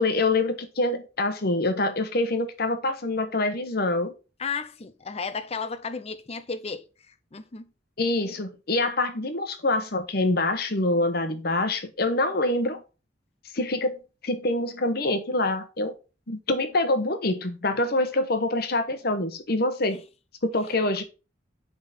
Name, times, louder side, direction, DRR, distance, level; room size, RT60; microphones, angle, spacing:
voice 1, 0.0-4.1 8.0-12.8 13.5-15.9 16.3-20.0 20.4-21.0, left 2 dB, 55° left, 1.1 m, -25 dB
voice 2, 4.4-7.6, left 5 dB, 35° left, 0.6 m, -34 dB
8.7 x 3.7 x 4.2 m
head